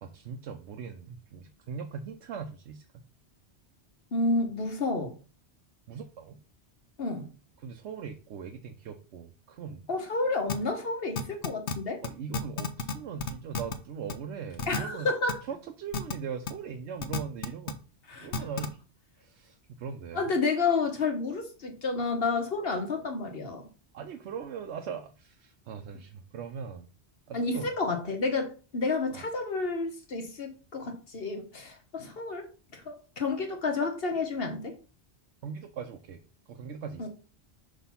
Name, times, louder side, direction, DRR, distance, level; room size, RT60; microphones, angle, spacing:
voice 1, 0.0-2.9 5.9-6.4 7.6-9.9 12.0-15.1 15.5-17.8 18.2-18.8 19.2-20.3 23.9-26.9 27.3-27.7 29.1-29.3 35.4-36.2 36.5-37.1, right 6 dB, 90° right, 0.9 m, -40 dB
voice 2, 4.1-5.1 7.0-7.2 9.9-12.0 14.7-15.4 18.1-18.5 20.1-23.6 27.3-32.5 32.7-34.8 37.0-37.1, left 3 dB, 60° left, 1.2 m, -30 dB
sound 1, 10.5-10.6 11.2-11.7 12.0-12.1 12.3-12.9 13.2-13.7 14.1-14.2 14.6-14.8 15.3-15.4 15.9-16.1 16.5-16.6 17.0-17.7 18.3-18.7, left 5 dB, 80° left, 1.1 m, -30 dB
6.1 x 3.2 x 5.5 m
omnidirectional pair, 1.1 m